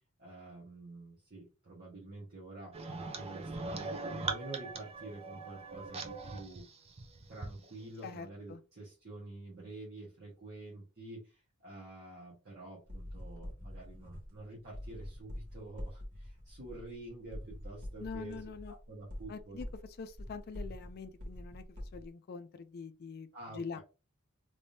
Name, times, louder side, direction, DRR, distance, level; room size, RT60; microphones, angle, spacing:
voice 1, 0.2-2.7 3.1-6.7 7.3-19.6 23.3-23.8, right 2 dB, 50° right, 1.4 m, -48 dB
sound 1, 2.7-7.6, right 3 dB, 30° right, 0.5 m, -41 dB
voice 2, 8.0-8.6 18.0-18.7 19.3-19.7 20.0-23.3 23.5-23.8, left 5 dB, 45° left, 0.4 m, -44 dB
sound 2, 12.9-22.1, left 1 dB, 75° right, 1.7 m, -45 dB
3.5 x 3.4 x 2.7 m
head